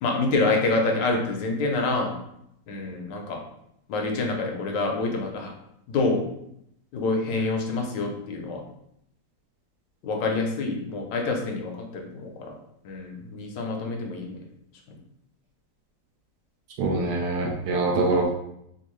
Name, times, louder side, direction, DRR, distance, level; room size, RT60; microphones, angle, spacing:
voice 1, 0.0-2.1 2.7-3.4 3.9-5.5 5.9-6.2 6.9-8.6 10.0-12.3 12.8-14.4, left 3 dB, 75° left, 2 dB, 1.2 m, -27 dB
voice 2, 16.8-18.3, right 2 dB, 75° right, 0 dB, 1.1 m, -24 dB
3.5 x 2.5 x 3.0 m, 0.77 s
omnidirectional pair, 2.0 m